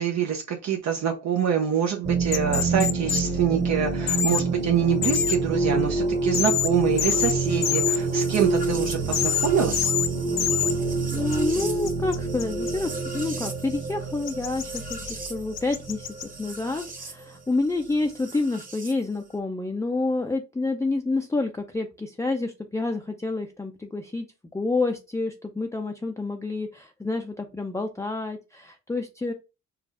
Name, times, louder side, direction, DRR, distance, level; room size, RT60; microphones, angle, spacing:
voice 1, 0.0-9.9, right 8 dB, 65° right, 2 dB, 0.8 m, -25 dB
sound 1, 2.0-17.1 18.3-18.9, right 3 dB, 30° right, 1.2 m, -27 dB
sound 2, 2.3-3.2 4.1-4.4 5.0-5.4 6.3-6.7 7.0-7.3 7.6-8.0 9.1-9.5 9.7-10.1 10.4-10.7 11.3-12.7 14.3-15.1 15.5-16.2, left 9 dB, 60° left, 0.6 m, -25 dB
voice 2, 11.1-16.1 16.4-24.3 24.5-29.3, left 3 dB, 10° left, 3 dB, 0.5 m, -28 dB
4.7 x 2.4 x 3.5 m, 0.28 s
cardioid pair, 90°, 30 cm